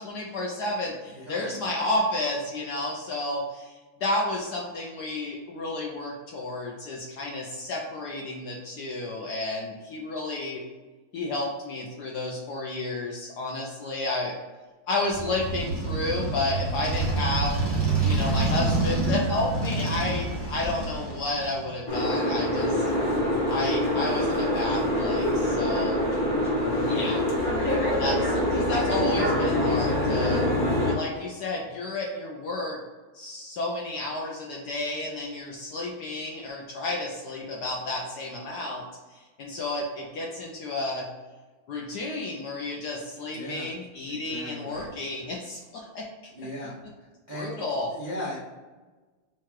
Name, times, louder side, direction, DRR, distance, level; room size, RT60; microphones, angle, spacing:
voice 1, 0.0-10.6 11.1-14.3 14.9-17.5 18.0-22.9 23.5-26.0 26.9-27.2 28.0-30.4 30.8-32.8 33.1-38.8 39.1-41.1 41.7-46.1 47.3-47.9, left 2 dB, 70° left, -1 dB, 0.9 m, -31 dB
voice 2, 1.1-1.5 17.8-18.5 43.3-43.7 44.1-44.9 46.3-46.8 47.3-47.6 47.9-48.4, equal, 75° right, -7 dB, 0.4 m, -37 dB
Motorcycle, 15.1-21.8, right 3 dB, 20° right, 0.6 m, -27 dB
Boat Water vehicle, 21.9-30.9, left 1 dB, 40° left, 1.3 m, -25 dB
4.6 x 2.4 x 4.4 m, 1.3 s
omnidirectional pair, 2.3 m